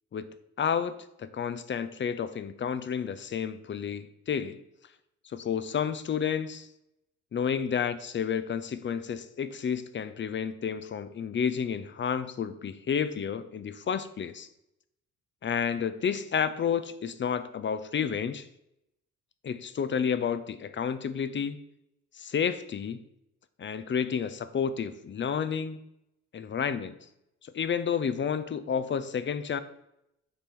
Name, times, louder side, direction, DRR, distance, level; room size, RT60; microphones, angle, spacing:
voice 1, 0.6-4.6 5.3-6.7 7.3-14.5 15.4-18.5 19.4-21.6 22.1-23.0 23.6-25.8 26.3-27.0 27.4-29.6, left 7 dB, 40° left, 13 dB, 0.6 m, -30 dB
7.5 x 4.5 x 5.3 m, 0.83 s
cardioid pair, 90°, 30 cm